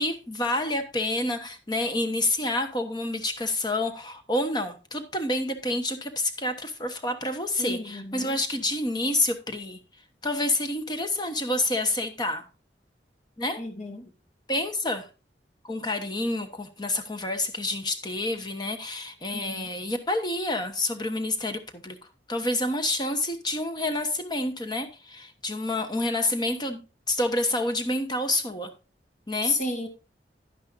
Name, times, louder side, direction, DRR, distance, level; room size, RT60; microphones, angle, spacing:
voice 1, 0.0-9.8 10.2-12.5 13.4-13.6 14.5-15.1 15.6-22.0 22.3-28.7 29.3-29.6, left 2 dB, 25° left, 1.2 m, -28 dB
voice 2, 7.6-8.3 13.6-14.0 19.3-19.7 29.4-29.9, left 2 dB, 45° left, 2.2 m, -31 dB
11.0 x 10.0 x 2.6 m
head